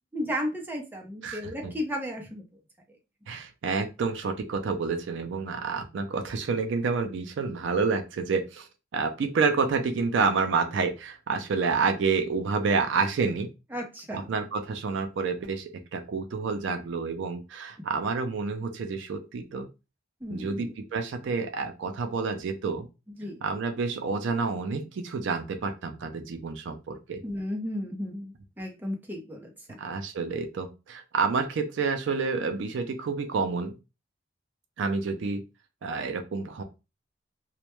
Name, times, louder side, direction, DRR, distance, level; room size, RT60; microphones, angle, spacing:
voice 1, 0.1-2.4 13.7-14.3 20.2-20.7 23.2-23.4 27.2-29.8, equal, 10° right, 1 dB, 0.5 m, -34 dB
voice 2, 1.2-1.7 3.3-13.5 14.1-19.7 20.3-22.9 23.4-27.2 29.8-33.7 34.8-35.4 35.8-36.6, right 4 dB, 65° right, 6 dB, 0.4 m, -29 dB
2.1 x 2.1 x 2.9 m, 0.28 s
head